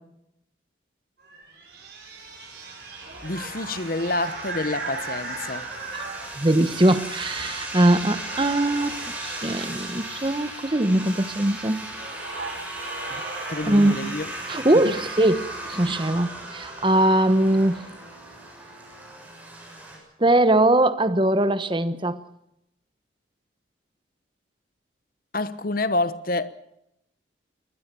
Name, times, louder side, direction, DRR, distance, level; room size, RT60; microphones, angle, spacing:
sound 1, 1.2-6.8 7.6-7.9 8.2-10.1 11.4-11.5 11.9-13.6, right 3 dB, 55° right, 7.4 m, -37 dB
sound 2, 2.0-20.0, right 1 dB, 10° right, 7.0 m, -37 dB
voice 1, 3.2-5.7 13.1-13.2 13.5-14.3 14.8-15.0 25.3-26.5, left 2 dB, 50° left, 1.1 m, -28 dB
voice 2, 6.4-8.9 9.2-11.8 13.7-14.1 14.5-17.8 20.2-22.2, right 1 dB, 25° right, 1.1 m, -21 dB
22.5 x 19.0 x 6.9 m
head